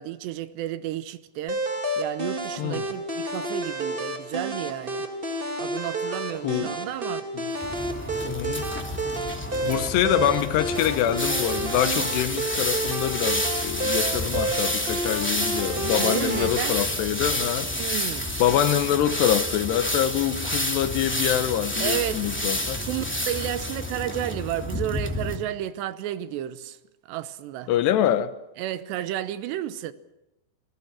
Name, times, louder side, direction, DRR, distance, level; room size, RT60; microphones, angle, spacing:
voice 1, 0.0-1.6 2.0-5.1 5.6-7.3 16.0-16.8 17.8-18.3 21.8-22.3 22.5-26.8 27.1-27.7 28.6-29.9, right 12 dB, 80° right, 3.1 m, -32 dB
sound 1, 1.5-16.5, right 2 dB, 25° right, 1.1 m, -30 dB
sound 2, 7.6-25.4, left 1 dB, 5° left, 1.7 m, -29 dB
voice 2, 8.2-8.7 9.6-17.7 18.4-22.8 27.7-28.3, left 11 dB, 80° left, 3.1 m, -25 dB
28.0 x 18.5 x 7.4 m
omnidirectional pair, 4.9 m